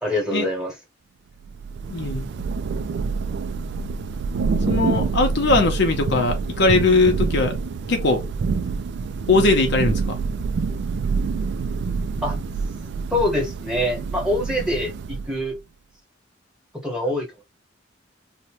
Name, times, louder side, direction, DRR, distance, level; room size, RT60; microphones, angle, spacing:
voice 1, 0.0-0.7 12.2-12.4 13.1-15.6 16.8-17.4, left 1 dB, 5° right, 1.2 m, -25 dB
Thunder / Rain, 1.4-15.5, right 4 dB, 60° right, 0.3 m, -26 dB
voice 2, 1.9-2.3 4.7-7.6 7.9-8.2 9.3-10.2, left 3 dB, 60° left, 0.7 m, -20 dB
2.7 x 2.1 x 2.9 m
head